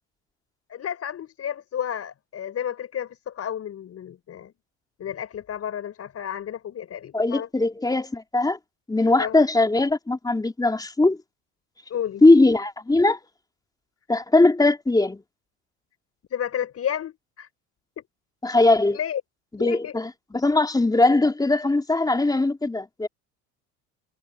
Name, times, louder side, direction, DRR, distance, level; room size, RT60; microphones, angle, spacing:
voice 1, 0.7-4.5 5.0-7.5 9.2-9.4 11.9-12.2 16.3-17.5 18.0-18.1 18.9-19.2 19.6-20.0, left 9 dB, 45° left, 6.4 m, -31 dB
voice 2, 7.1-8.6 8.9-11.2 12.2-13.2 14.1-15.2 18.4-19.0 19.5-23.1, left 2 dB, 10° left, 3.7 m, -20 dB
supercardioid pair, 90°, 34 cm